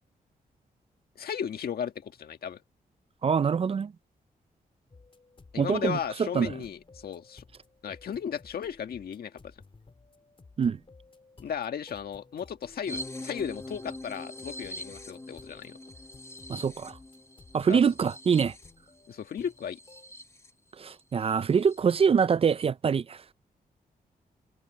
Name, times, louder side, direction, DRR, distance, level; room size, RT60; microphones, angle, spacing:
voice 1, 1.1-2.6 5.5-7.4 7.8-9.4 11.4-15.8 17.7-17.8 19.1-19.8, left 8 dB, 75° left, 1.7 m, -35 dB
voice 2, 3.2-3.9 5.6-6.5 10.6-10.8 16.5-17.0 17.5-18.5 20.8-23.2, right 6 dB, 40° right, 0.4 m, -25 dB
sound 1, 4.9-20.1, left 3 dB, 35° left, 3.2 m, -56 dB
sound 2, 12.9-20.5 20.9-21.0 21.3-21.8, left 1 dB, 20° left, 1.4 m, -43 dB
cardioid pair, 100°, 16 cm